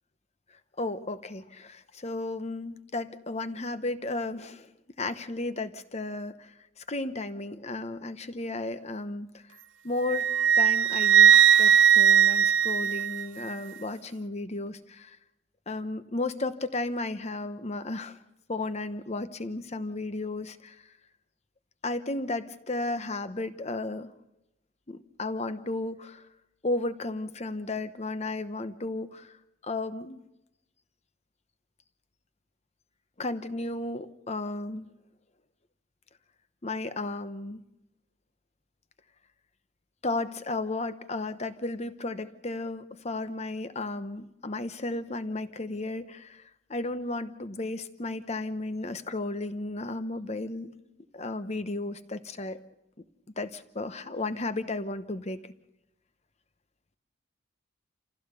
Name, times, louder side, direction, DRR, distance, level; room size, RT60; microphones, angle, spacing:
voice 1, 0.8-4.7 5.0-6.5 6.9-9.3 9.8-10.3 10.6-15.2 15.7-18.2 18.5-20.7 21.8-24.1 24.9-26.2 26.6-29.3 29.6-30.2 33.2-34.9 36.6-37.6 40.0-46.4 46.7-50.7 51.1-52.6 53.4-55.4, left 2 dB, 35° left, 11 dB, 0.9 m, -34 dB
Wind instrument woodwind instrument, 10.1-13.5, right 8 dB, 65° right, 0.7 m, -19 dB
27.5 x 16.0 x 6.8 m, 0.94 s
head